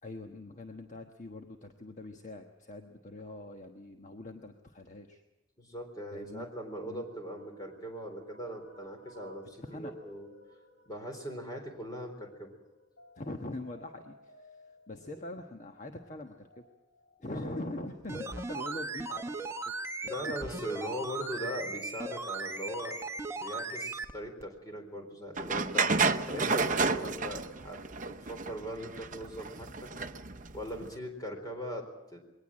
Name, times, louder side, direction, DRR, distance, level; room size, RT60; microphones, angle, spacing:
voice 1, 0.0-5.2 6.1-6.5 6.8-7.0 9.6-10.0 13.2-14.6 14.9-16.6 17.2-19.2 20.2-20.3, left 2 dB, 35° left, 4 dB, 1.3 m, -43 dB
voice 2, 5.6-10.3 10.9-12.5 17.3-17.6 20.0-23.0 23.3-25.9 26.3-27.8 28.3-29.9 30.5-32.2, equal, 20° left, 4 dB, 3.9 m, -40 dB
sound 1, 6.6-17.6, equal, 60° left, 5.6 m, -59 dB
sound 2, 18.0-24.1 24.4-24.5, right 3 dB, 15° right, 1.1 m, -37 dB
sound 3, 25.4-30.9, right 4 dB, 40° right, 0.8 m, -31 dB
22.0 x 18.5 x 7.6 m, 1.0 s
head